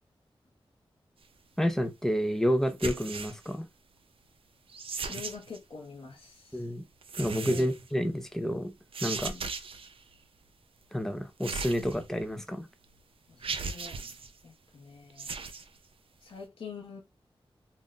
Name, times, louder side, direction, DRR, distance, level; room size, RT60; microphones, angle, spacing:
voice 1, 1.6-3.7 6.5-6.8 7.2-8.7 9.0-9.4 10.9-12.7, equal, 5° left, 0.5 m, -29 dB
sound 1, 2.7-3.5 4.7-5.6 7.0-7.8 8.9-9.9 11.4-12.3 12.8-12.9 13.4-14.3 15.1-15.6, right 4 dB, 70° right, 0.4 m, -37 dB
voice 2, 5.1-6.7 7.4-7.7 9.2-9.5 13.3-15.5 16.2-17.0, left 5 dB, 70° left, 0.7 m, -46 dB
2.5 x 2.0 x 3.7 m
wide cardioid pair, 75°, 10 cm